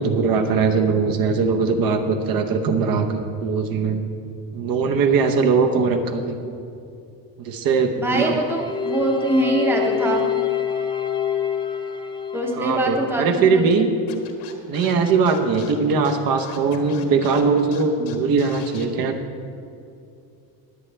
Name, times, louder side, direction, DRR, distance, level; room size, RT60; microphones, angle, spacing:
voice 1, 0.0-4.0 4.5-6.4 7.4-8.4 12.6-13.9 14.7-19.1, right 5 dB, 55° right, 5 dB, 1.0 m, -20 dB
voice 2, 8.0-10.3 12.3-13.8, right 2 dB, 5° right, 1 dB, 0.8 m, -23 dB
sound 1, 8.3-13.5, left 9 dB, 10° left, 0.5 m, -26 dB
Scratching (performance technique), 14.1-18.8, left 9 dB, 75° left, 1.5 m, -42 dB
21.0 x 8.4 x 3.4 m, 2.6 s
cardioid pair, 170°, 42 cm